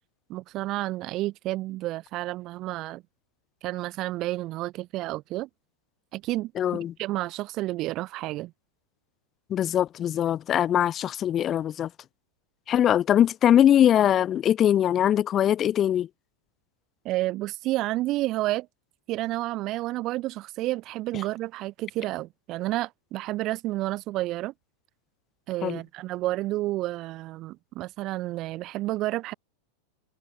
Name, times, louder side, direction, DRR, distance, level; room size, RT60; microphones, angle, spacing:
voice 1, 0.3-3.0 3.6-5.5 6.1-8.5 17.1-18.7 19.1-24.5 25.5-29.3, right 17 dB, 35° right, 6.8 m, -30 dB
voice 2, 6.6-6.9 9.5-11.9 12.7-16.1 25.6-25.8, left 10 dB, 30° left, 3.9 m, -22 dB
figure-of-eight pair, 90°, 0 cm